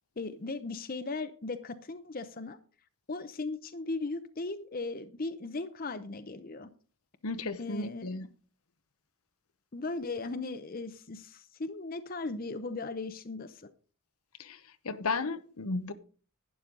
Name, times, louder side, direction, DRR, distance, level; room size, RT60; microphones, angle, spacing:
voice 1, 0.2-2.6 3.1-6.7 7.6-8.3 9.7-13.7, left 3 dB, 40° left, 0.7 m, -37 dB
voice 2, 7.2-8.3 14.4-14.6 14.8-15.9, left 3 dB, 75° left, 0.9 m, -34 dB
11.5 x 10.0 x 3.9 m
head